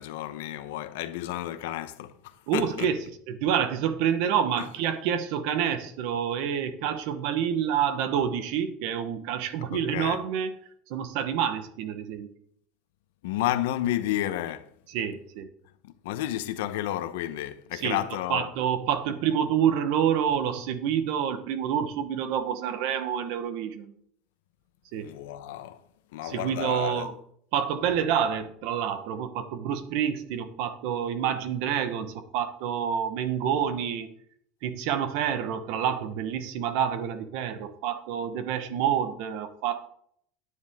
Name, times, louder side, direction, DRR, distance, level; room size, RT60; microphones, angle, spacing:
voice 1, 0.0-2.9 4.6-4.7 9.7-10.2 13.2-14.7 15.8-18.5 25.0-25.9 26.1-27.1, left 13 dB, 85° left, 0.9 m, -31 dB
voice 2, 2.5-3.0 3.3-10.5 10.9-12.3 14.9-15.5 17.7-18.0 18.3-23.9 24.9-25.1 26.2-27.1 27.5-34.1 34.6-39.8, right 8 dB, 55° right, 1.1 m, -28 dB
10.0 x 9.7 x 3.7 m
cardioid pair, 175°, 0 cm